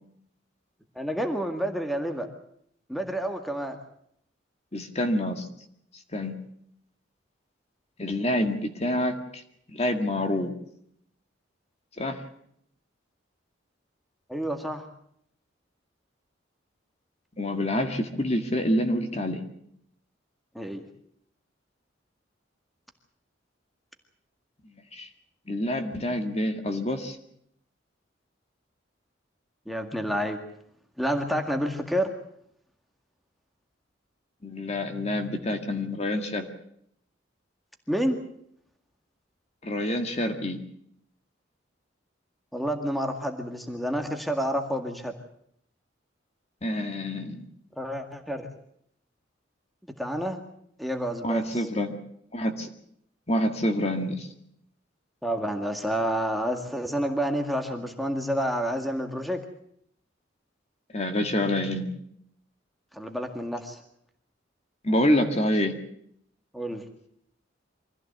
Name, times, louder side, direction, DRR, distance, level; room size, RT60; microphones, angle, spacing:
voice 1, 1.0-2.3 2.9-3.8 14.3-14.8 20.6-20.8 29.7-30.4 31.0-32.1 37.9-38.2 42.5-45.1 47.8-48.5 50.0-50.4 50.8-51.7 55.2-59.4 62.9-63.8 66.5-66.8, equal, ahead, 5 dB, 2.0 m, -29 dB
voice 2, 4.7-5.5 6.1-6.4 8.0-9.4 9.7-10.5 12.0-12.2 17.4-19.5 24.9-25.1 25.5-27.2 34.4-36.5 39.6-40.6 46.6-47.5 51.2-52.0 52.3-52.7 53.3-54.3 60.9-62.0 64.8-65.8, left 1 dB, 35° left, 5 dB, 2.0 m, -27 dB
24.5 x 15.5 x 8.1 m, 0.70 s
head